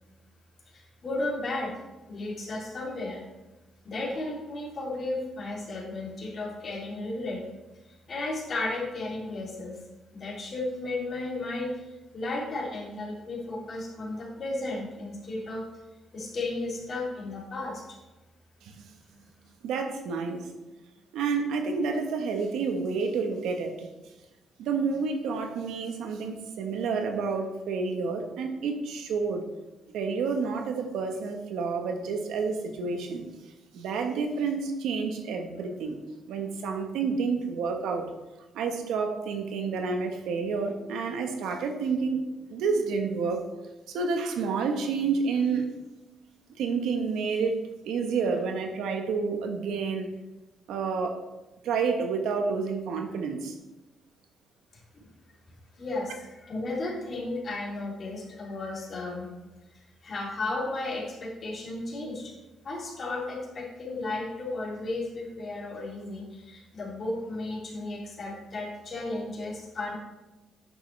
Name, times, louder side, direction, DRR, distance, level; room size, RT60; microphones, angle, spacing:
voice 1, 0.7-1.7 2.1-3.2 3.8-7.4 8.1-9.8 10.1-15.6 16.1-18.0 54.9-55.1 55.8-59.3 59.7-62.3 62.6-69.9, left 2 dB, 45° left, -4 dB, 3.0 m, -34 dB
voice 2, 18.6-18.9 19.6-20.5 21.1-23.9 24.6-29.4 29.9-33.2 33.7-36.0 36.3-38.1 38.5-42.2 42.5-43.5 43.9-45.7 46.6-47.6 47.8-50.1 50.7-51.2 51.6-53.6, right 5 dB, 85° right, 5 dB, 1.2 m, -29 dB
10.0 x 6.4 x 3.3 m, 1.1 s
cardioid pair, 90°, 0 cm